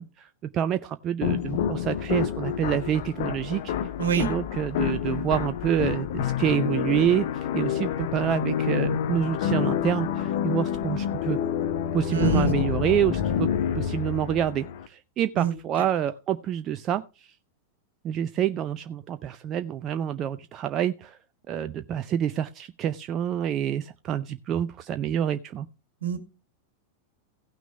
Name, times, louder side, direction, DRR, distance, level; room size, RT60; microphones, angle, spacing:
voice 1, 0.0-3.7 4.1-11.4 11.9-17.0 18.0-21.2 21.5-25.7, right 10 dB, 30° right, 11 dB, 0.5 m, -27 dB
sound 1, 1.2-14.9, left 9 dB, 55° left, 0.9 m, -28 dB
voice 2, 12.1-12.5 15.4-15.6 26.0-26.2, right 9 dB, 65° right, 8 dB, 1.8 m, -25 dB
16.5 x 6.1 x 3.5 m, 0.30 s
figure-of-eight pair, 90°, 0 cm